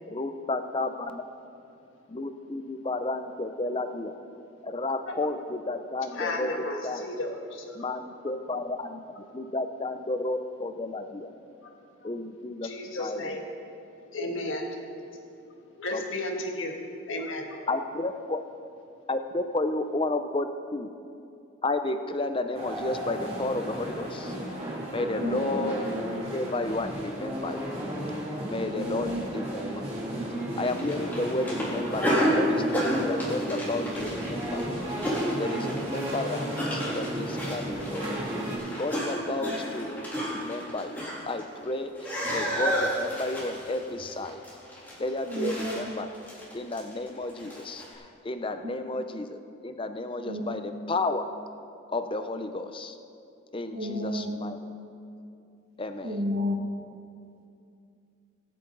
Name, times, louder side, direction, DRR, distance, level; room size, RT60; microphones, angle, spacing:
voice 1, 0.1-1.3 2.1-4.1 4.6-7.1 7.8-9.0 9.3-11.3 12.0-13.3 15.9-16.0 17.7-18.4 19.1-20.9 21.6-25.8 26.3-27.8 28.5-29.8 30.6-44.4 44.7-46.1 46.5-51.2 51.9-53.0 53.5-54.6 55.8-56.2, left 2 dB, 25° left, 8 dB, 0.5 m, -32 dB
voice 2, 6.1-7.9 11.6-11.7 12.0-12.1 12.6-13.4 14.1-14.7 15.8-16.8 17.1-17.6, left 1 dB, 70° left, 2 dB, 1.6 m, -33 dB
sound 1, 22.5-38.6, right 1 dB, 30° right, 2.8 m, -34 dB
voice 3, 25.2-25.7 28.7-29.3 35.5-36.1 39.4-39.6 45.2-45.8 48.6-49.0 50.2-50.5 53.7-54.3 56.0-56.6, left 1 dB, 45° right, 2 dB, 1.2 m, -33 dB
sound 2, 30.6-41.7 42.0-47.9, equal, 10° left, 3.1 m, -31 dB
22.0 x 8.5 x 3.9 m, 2.6 s
head